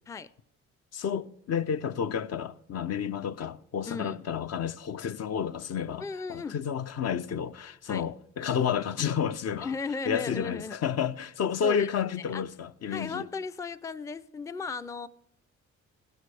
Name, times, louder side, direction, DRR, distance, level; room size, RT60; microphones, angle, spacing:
voice 1, 0.9-9.7 10.1-13.3, left 8 dB, 55° left, 0.7 m, -31 dB
voice 2, 3.9-4.2 6.0-6.6 7.9-8.0 9.6-10.8 11.6-11.9 12.3-12.4 12.9-15.1, left 4 dB, 10° left, 0.4 m, -35 dB
16.0 x 13.0 x 3.3 m
cardioid pair, 90°, 30 cm